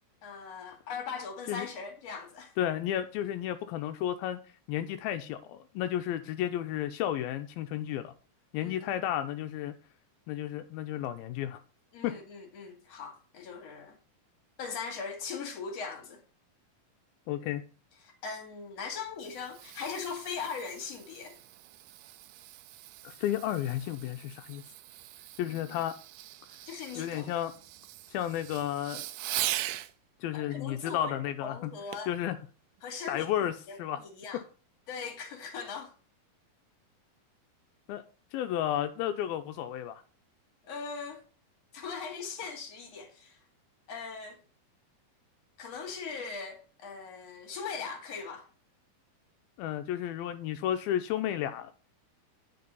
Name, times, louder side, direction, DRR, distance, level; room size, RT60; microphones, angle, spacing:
voice 1, 0.2-2.5 8.6-8.9 11.9-13.9 14.6-16.2 18.0-21.4 25.5-25.8 26.7-27.3 30.3-32.1 32.8-33.3 33.7-34.4 34.9-35.9 40.7-41.2 41.7-43.4 43.9-44.4 45.6-48.5, left 5 dB, 50° left, 3.2 m, -40 dB
voice 2, 2.6-4.4 4.7-8.1 8.5-9.7 10.3-11.6 12.0-12.1 17.3-17.6 23.0-24.6 25.4-26.0 26.9-27.5 28.1-29.1 30.2-31.7 32.1-32.4 33.1-33.5 33.8-34.0 37.9-38.0 38.3-40.0 49.6-51.7, left 11 dB, 85° left, 2.6 m, -32 dB
Fireworks, 18.9-29.9 31.9-32.2 32.8-32.9, right 15 dB, 80° right, 2.1 m, -41 dB
9.5 x 6.1 x 5.5 m
omnidirectional pair, 4.2 m